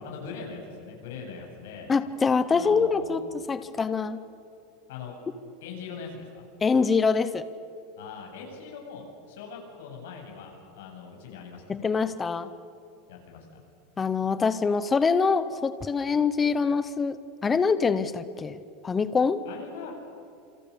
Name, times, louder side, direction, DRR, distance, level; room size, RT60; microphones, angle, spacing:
voice 1, 0.0-1.9 2.5-3.2 4.9-5.1 5.6-6.4 8.0-11.6 13.1-13.5 19.4-19.9, left 5 dB, 85° left, 1 dB, 8.0 m, -41 dB
voice 2, 1.9-4.2 6.6-7.4 11.7-12.5 14.0-19.4, left 5 dB, 10° left, 13 dB, 0.7 m, -25 dB
28.0 x 26.0 x 7.0 m, 2.6 s
supercardioid pair, 180°, 0 cm